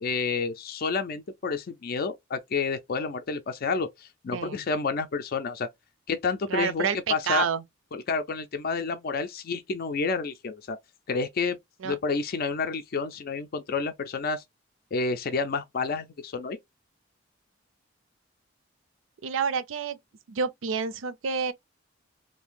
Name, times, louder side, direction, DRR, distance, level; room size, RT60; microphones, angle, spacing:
voice 1, 0.0-5.7 6.1-7.5 7.9-10.8 11.1-11.6 11.8-14.4 14.9-16.6, left 4 dB, 50° left, 0.4 m, -29 dB
voice 2, 4.3-4.6 6.5-7.0 7.3-7.6 11.8-11.9 19.2-20.0 20.3-21.5, right 6 dB, 80° right, 0.5 m, -28 dB
2.7 x 2.5 x 3.6 m
head